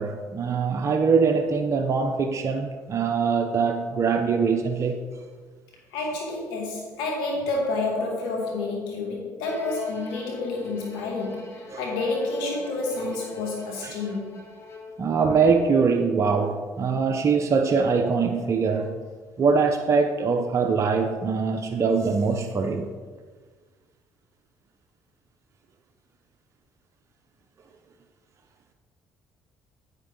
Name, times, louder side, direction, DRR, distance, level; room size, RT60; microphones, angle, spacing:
voice 1, 0.0-5.0 11.7-11.8 13.8-14.0 15.0-18.9 19.4-22.9, right 5 dB, 45° right, 0.9 m, -23 dB
voice 2, 5.9-14.4, left 3 dB, 85° left, 2.6 m, -29 dB
Bowed string instrument, 9.4-15.1, left 3 dB, 40° left, 2.7 m, -42 dB
9.2 x 9.0 x 3.9 m
supercardioid pair, 70°, 7 cm